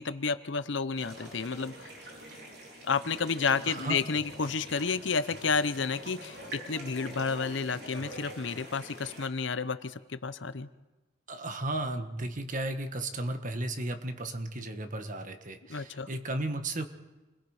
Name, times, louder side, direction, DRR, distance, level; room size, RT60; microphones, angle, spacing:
voice 1, 0.0-1.9 2.8-10.7 15.7-16.1, left 5 dB, 70° left, 13 dB, 0.8 m, -31 dB
sound 1, 1.0-9.3, equal, 60° right, 4.2 m, -45 dB
voice 2, 3.7-4.0 11.3-16.9, right 2 dB, 40° right, 7 dB, 1.5 m, -34 dB
28.5 x 21.5 x 4.9 m, 1.1 s
head